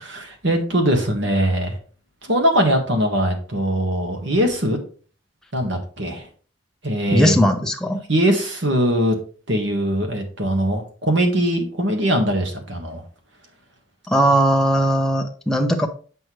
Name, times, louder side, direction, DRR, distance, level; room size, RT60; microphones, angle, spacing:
voice 1, 0.0-1.8 2.3-4.8 5.5-6.3 6.8-7.3 8.1-9.2 9.5-13.0, equal, 70° right, 4 dB, 1.6 m, -21 dB
voice 2, 7.1-8.0 14.1-15.9, right 1 dB, 5° left, 3 dB, 0.6 m, -18 dB
7.7 x 5.9 x 3.1 m, 0.41 s
head